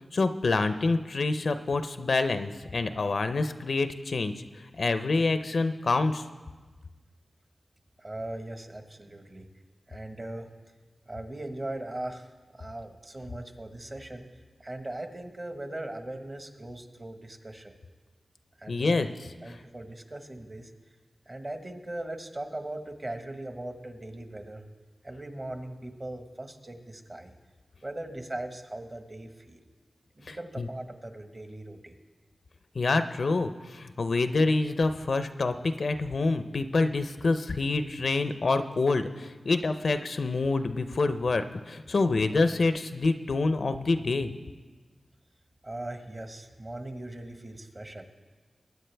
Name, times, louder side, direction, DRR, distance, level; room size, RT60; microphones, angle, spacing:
voice 1, 0.1-4.3 4.8-6.2 18.7-19.1 19.5-19.6 30.3-30.7 32.7-44.3, left 3 dB, 65° left, 9 dB, 0.6 m, -27 dB
voice 2, 8.0-9.5 9.9-10.5 11.0-14.3 14.6-17.8 18.6-19.0 19.4-20.7 21.2-24.6 25.0-27.3 27.8-29.6 30.2-32.0 45.6-48.0, right 1 dB, 35° right, 6 dB, 1.3 m, -39 dB
21.0 x 9.2 x 3.4 m, 1.3 s
wide cardioid pair, 65°, 0 cm